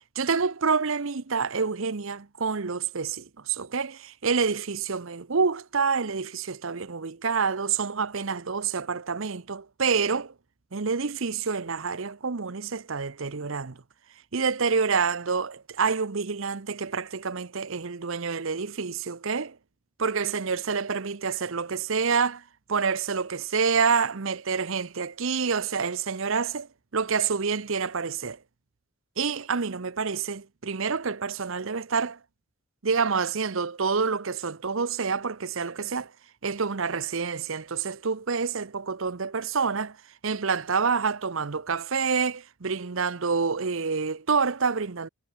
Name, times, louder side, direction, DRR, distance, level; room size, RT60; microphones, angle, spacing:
voice 1, 0.2-10.3 10.7-13.8 14.3-19.6 20.0-22.4 22.7-28.4 29.2-32.2 32.8-36.1 36.4-40.0 40.2-45.1, right 5 dB, 65° right, 0.8 m, -27 dB
head